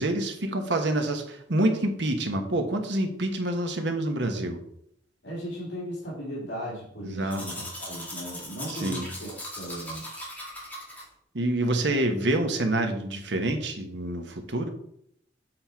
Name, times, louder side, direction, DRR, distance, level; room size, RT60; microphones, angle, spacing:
voice 1, 0.0-4.6 7.0-7.4 8.7-9.1 11.3-14.7, right 1 dB, 65° right, 5 dB, 1.2 m, -27 dB
voice 2, 5.2-10.0, equal, 65° left, -5 dB, 2.4 m, -37 dB
Domestic sounds home sounds, 7.3-11.0, left 1 dB, 10° left, 1.9 m, -39 dB
7.9 x 4.4 x 4.5 m, 0.71 s
head